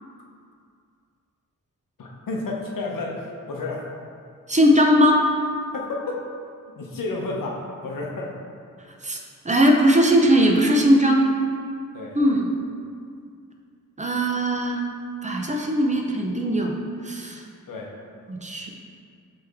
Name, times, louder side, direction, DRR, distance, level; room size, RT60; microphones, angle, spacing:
voice 1, 2.0-3.8 5.7-6.2 6.8-8.3 11.9-12.2 17.7-17.9, left 2 dB, 80° left, -1 dB, 0.9 m, -31 dB
voice 2, 4.5-5.2 9.0-9.2 9.4-11.3 12.1-12.5 14.0-14.8 15.2-16.7 17.0-17.4 18.3-18.7, equal, 20° right, 1 dB, 0.6 m, -19 dB
7.8 x 3.4 x 3.5 m, 2.3 s
wide cardioid pair, 100°, 33 cm